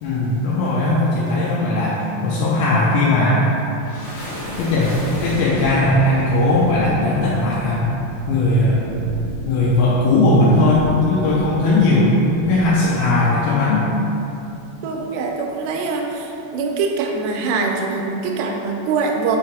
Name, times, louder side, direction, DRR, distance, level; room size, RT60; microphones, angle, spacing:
voice 1, 0.0-3.5 4.6-5.0 5.2-7.9 8.3-8.8 9.5-12.1 12.5-13.9, left 2 dB, 80° left, -6 dB, 2.3 m, -18 dB
sound 1, 3.4-13.8, equal, 60° left, 1.4 m, -34 dB
voice 2, 14.8-19.4, right 4 dB, 85° right, 2 dB, 2.6 m, -23 dB
6.3 x 4.6 x 3.6 m, 2.7 s
omnidirectional pair, 4.9 m